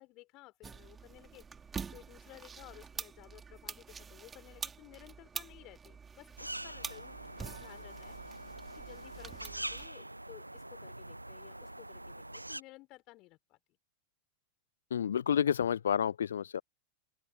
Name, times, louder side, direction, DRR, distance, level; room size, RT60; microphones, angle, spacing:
voice 1, 0.0-1.4 1.9-8.2 8.7-13.6, left 21 dB, 40° left, 4.6 m, -56 dB
sound 1, 0.6-9.9, right 6 dB, 15° right, 3.1 m, -46 dB
sound 2, 6.4-12.6, right 1 dB, 85° right, 0.7 m, -44 dB
voice 2, 14.9-16.6, left 8 dB, 65° left, 0.3 m, -29 dB
figure-of-eight pair, 90°, 0 cm